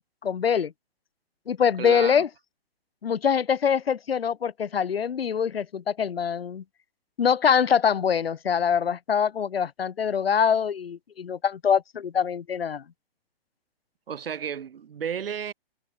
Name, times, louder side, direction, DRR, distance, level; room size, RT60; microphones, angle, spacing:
voice 1, 0.2-0.7 1.5-2.3 3.0-6.6 7.2-12.8, left 7 dB, 75° left, 4.9 m, -24 dB
voice 2, 1.8-2.2 14.1-15.5, right 8 dB, 70° right, 3.1 m, -32 dB
hypercardioid pair, 170°, 30 cm